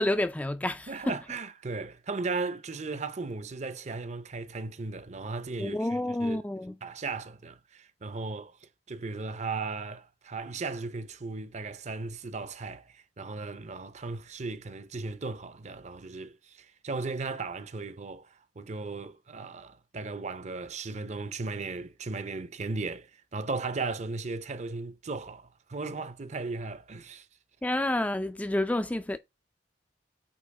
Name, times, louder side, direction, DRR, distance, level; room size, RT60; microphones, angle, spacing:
voice 1, 0.0-1.1 5.6-6.8 27.6-29.2, left 1 dB, 10° left, 0.3 m, -29 dB
voice 2, 0.9-6.4 6.8-27.3, right 3 dB, 40° right, 0.6 m, -36 dB
8.5 x 2.9 x 4.7 m
head